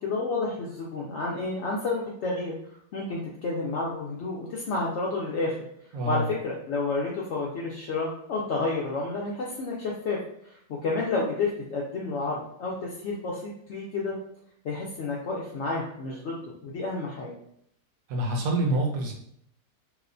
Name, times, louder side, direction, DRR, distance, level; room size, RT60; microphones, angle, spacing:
voice 1, 0.0-2.5 2.9-5.6 6.1-10.2 10.4-10.5 10.8-13.4 13.7-14.1 14.6-17.3, left 3 dB, 75° left, -4 dB, 0.6 m, -30 dB
voice 2, 5.9-6.3 18.1-19.1, right 1 dB, 70° right, 1 dB, 0.9 m, -26 dB
2.9 x 2.1 x 2.4 m, 0.70 s
omnidirectional pair, 1.7 m